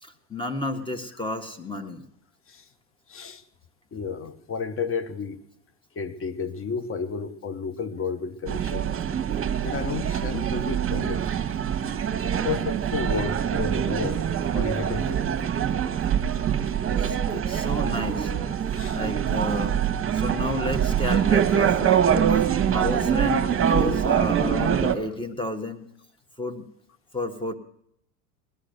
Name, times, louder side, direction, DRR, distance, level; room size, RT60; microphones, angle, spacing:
voice 1, 0.0-2.0 17.0-18.3 18.9-19.8 20.1-22.0 22.4-25.8 26.4-26.6 27.1-27.5, left 2 dB, 10° left, 1.6 m, -32 dB
voice 2, 3.1-3.4 3.9-5.4 6.0-8.9 9.6-11.3 12.4-14.2 14.5-15.2 18.7-19.0 20.4-20.5, left 5 dB, 30° left, 1.3 m, -32 dB
sound 1, 8.5-24.9, right 8 dB, 30° right, 1.6 m, -24 dB
18.5 x 11.5 x 6.7 m
supercardioid pair, 100°, 47 cm